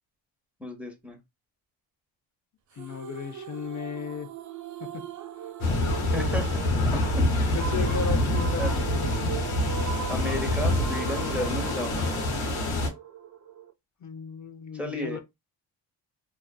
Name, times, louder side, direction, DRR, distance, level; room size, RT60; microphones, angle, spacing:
voice 1, 0.6-1.2 6.1-7.6 8.6-8.7 10.1-12.2 14.7-15.2, left 1 dB, 5° right, 0.9 m, -34 dB
voice 2, 2.7-4.3 7.5-8.7 14.0-15.2, left 6 dB, 40° left, 0.6 m, -35 dB
sound 1, 2.8-13.7, right 8 dB, 40° right, 0.5 m, -39 dB
sound 2, 5.6-12.9, left 2 dB, 85° left, 1.1 m, -26 dB
2.5 x 2.3 x 2.3 m
supercardioid pair, 65°, 47 cm